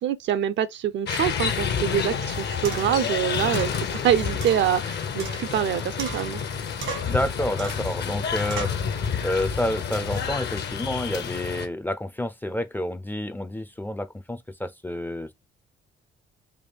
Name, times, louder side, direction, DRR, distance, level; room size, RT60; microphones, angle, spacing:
voice 1, 0.0-6.4, right 9 dB, 65° right, 0.5 m, -25 dB
sound 1, 1.1-11.7, left 6 dB, 60° left, 0.7 m, -29 dB
sound 2, 2.6-3.0 3.5-3.8 4.4-5.7 6.0-6.5 6.8-7.2 7.6-7.9 8.5-8.8, right 6 dB, 85° right, 1.4 m, -36 dB
voice 2, 7.1-15.3, left 1 dB, 10° left, 0.3 m, -29 dB
3.4 x 2.3 x 3.3 m
cardioid pair, 90°, 20 cm